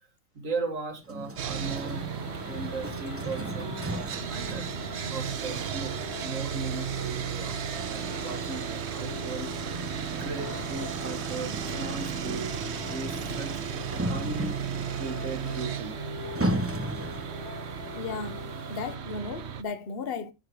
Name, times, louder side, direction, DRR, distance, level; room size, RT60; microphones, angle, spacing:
voice 1, 0.3-2.1 2.5-4.8 5.1-14.6 15.0-16.0, right 3 dB, 90° right, 2.6 m, -38 dB
sound 1, 1.0-17.4, right 1 dB, 15° right, 0.8 m, -37 dB
Sawing, 1.4-19.6, right 8 dB, 65° right, 1.1 m, -35 dB
sound 2, 1.5-19.0, left 7 dB, 75° left, 1.1 m, -44 dB
voice 2, 18.0-20.3, left 4 dB, 50° left, 1.2 m, -35 dB
10.5 x 6.7 x 4.7 m
omnidirectional pair, 1.3 m